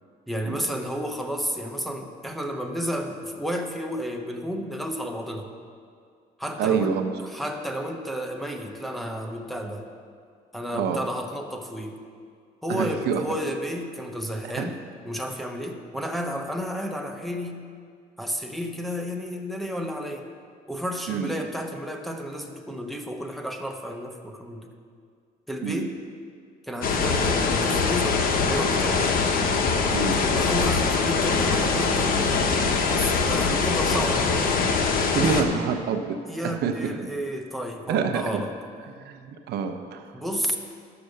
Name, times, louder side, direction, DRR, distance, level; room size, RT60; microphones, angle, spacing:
voice 1, 0.3-5.5 6.4-7.0 7.2-9.9 10.5-12.0 12.6-17.6 18.2-20.3 20.7-24.7 25.5-25.9 26.7-29.0 29.8-30.1 30.3-32.5 32.9-34.4 35.2-35.7 36.3-38.5 40.1-40.6, equal, ahead, 2 dB, 1.0 m, -32 dB
voice 2, 6.6-7.1 10.7-11.0 12.7-13.2 14.6-14.7 21.1-21.3 25.6-25.9 29.9-30.2 35.1-36.2 36.4-37.1 37.9-38.4 38.9-40.1, right 6 dB, 75° right, 7 dB, 0.9 m, -27 dB
sound 1, 26.8-35.4, left 4 dB, 55° left, 1.2 m, -23 dB
11.0 x 7.0 x 6.6 m, 2.2 s
cardioid pair, 110°, 17 cm